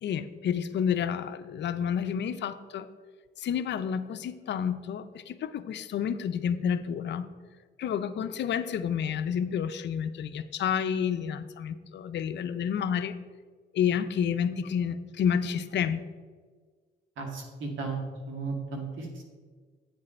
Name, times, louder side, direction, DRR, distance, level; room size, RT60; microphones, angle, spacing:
voice 1, 0.0-2.9 3.4-7.3 7.8-13.1 13.7-16.0, left 8 dB, 65° left, 11 dB, 0.6 m, -30 dB
voice 2, 17.2-18.0 18.3-19.2, right 4 dB, 75° right, 1 dB, 2.0 m, -35 dB
8.9 x 7.5 x 4.3 m, 1.5 s
cardioid pair, 90°, 20 cm